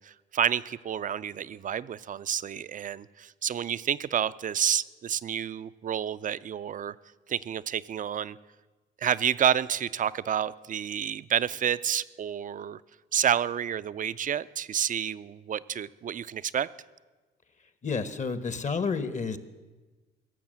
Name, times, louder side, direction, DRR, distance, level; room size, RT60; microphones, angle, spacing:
voice 1, 0.0-6.9 7.3-8.4 9.0-12.8 13.1-16.7, right 9 dB, 40° right, 17 dB, 0.4 m, -29 dB
voice 2, 17.8-19.4, left 5 dB, 40° left, 13 dB, 1.0 m, -30 dB
17.0 x 7.1 x 7.5 m, 1.3 s
cardioid pair, 90°, 20 cm